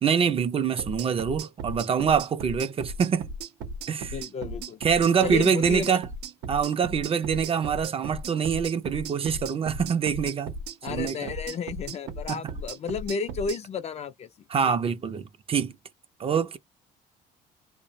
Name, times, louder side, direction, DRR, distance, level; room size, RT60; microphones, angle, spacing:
voice 1, 0.0-3.3 3.9-4.2 4.8-6.0 6.5-10.5 10.9-11.2 12.3-12.4 14.5-15.7 16.2-16.6, right 7 dB, 35° right, 0.4 m, -25 dB
sound 1, 0.8-13.6, right 3 dB, 85° right, 0.7 m, -37 dB
voice 2, 4.1-4.8 5.2-6.0 10.8-14.3, left 5 dB, 40° left, 0.4 m, -32 dB
2.6 x 2.1 x 2.6 m
cardioid pair, 110°, 17 cm